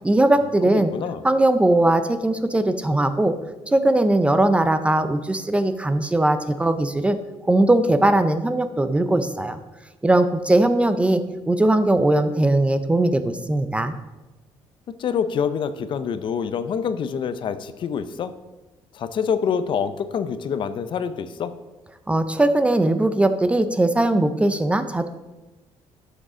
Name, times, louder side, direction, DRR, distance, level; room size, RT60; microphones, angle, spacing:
voice 1, 0.0-0.9 1.2-3.3 3.7-7.2 7.5-9.6 10.0-11.2 11.5-13.9 22.1-25.1, right 1 dB, 10° right, 10 dB, 0.4 m, -19 dB
voice 2, 0.6-1.2 15.0-18.3 18.9-21.5, left 7 dB, 50° left, 12 dB, 0.5 m, -26 dB
12.0 x 6.5 x 3.7 m, 1.1 s
cardioid pair, 140°, 11 cm